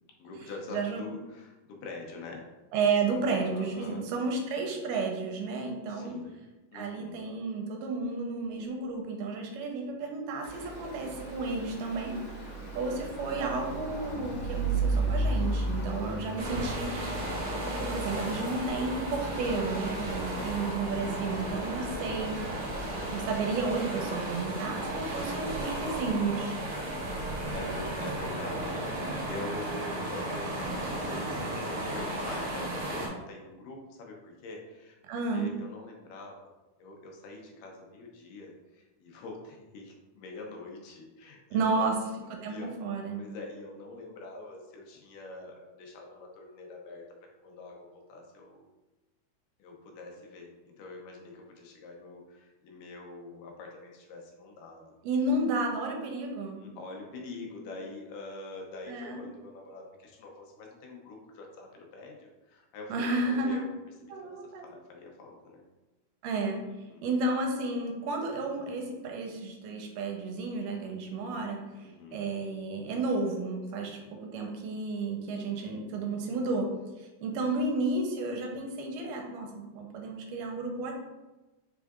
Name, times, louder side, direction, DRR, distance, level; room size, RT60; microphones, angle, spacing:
voice 1, 0.2-2.5 3.5-4.1 5.9-6.4 6.7-7.2 12.5-13.1 20.3-20.6 27.1-35.0 35.3-36.5 36.8-42.0 42.5-42.7 43.2-47.0 47.4-48.7 49.6-54.8 56.5-65.6 66.9-67.2 71.7-72.3 73.8-74.1, left 2 dB, 90° left, 1 dB, 2.4 m, -45 dB
voice 2, 0.7-1.0 2.7-6.2 6.7-12.2 12.8-17.3 17.6-22.4 23.1-26.6 35.1-35.5 41.5-42.0 42.3-43.2 55.0-56.6 58.9-59.2 62.9-63.6 64.1-64.6 66.2-66.6 67.0-71.6 72.1-76.7 77.0-80.9, right 3 dB, 90° right, 1 dB, 2.2 m, -32 dB
Stream, 10.4-25.3, right 2 dB, 55° left, 2.0 m, -36 dB
sound 1, 16.4-33.1, right 1 dB, 65° right, 1.2 m, -34 dB
5.5 x 3.6 x 2.4 m, 1.1 s
omnidirectional pair, 3.7 m